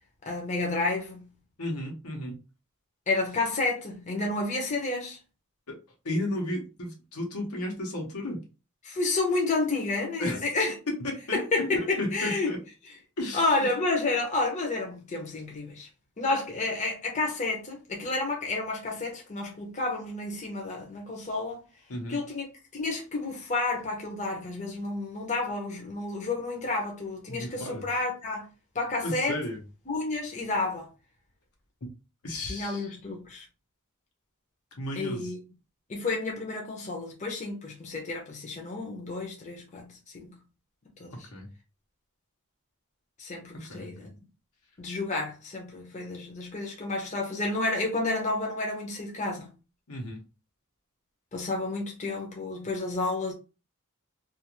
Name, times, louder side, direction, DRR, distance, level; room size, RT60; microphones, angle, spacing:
voice 1, 0.2-1.3 3.1-5.2 8.8-10.7 11.3-12.5 13.3-15.9 16.2-21.6 22.1-22.5 22.7-28.5 28.7-29.4 29.9-30.9 32.5-33.4 35.0-35.4 35.9-40.4 41.0-41.3 43.2-44.1 44.8-49.5 51.3-53.3, left 3 dB, 35° left, 0.7 m, -30 dB
voice 2, 1.6-2.4 5.7-5.8 6.0-8.4 10.2-10.4 10.9-12.6 13.2-13.4 21.9-22.2 27.3-27.9 29.0-29.6 32.2-32.9 34.8-35.3 41.1-41.5 43.5-44.1 49.9-50.2, left 1 dB, 90° left, 1.0 m, -33 dB
2.5 x 2.4 x 2.9 m
head